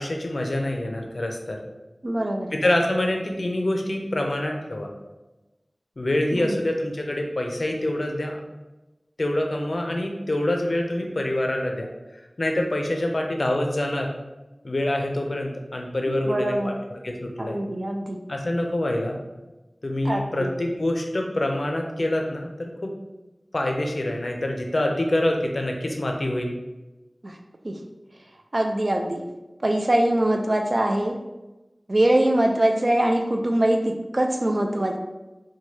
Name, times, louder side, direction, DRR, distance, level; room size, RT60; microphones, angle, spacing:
voice 1, 0.0-1.6 2.5-4.9 6.0-8.3 9.2-11.9 12.4-14.1 14.6-17.6 18.3-19.2 19.8-22.9 23.5-26.5, left 1 dB, 65° left, 2 dB, 0.4 m, -26 dB
voice 2, 2.0-2.6 6.3-6.6 16.3-16.8 17.4-18.2 20.0-20.5 27.2-27.4 27.6-27.8 28.5-29.2 29.6-31.2 31.9-35.0, right 1 dB, 50° right, 3 dB, 0.3 m, -23 dB
2.8 x 2.2 x 3.1 m, 1.1 s
wide cardioid pair, 55°, 0 cm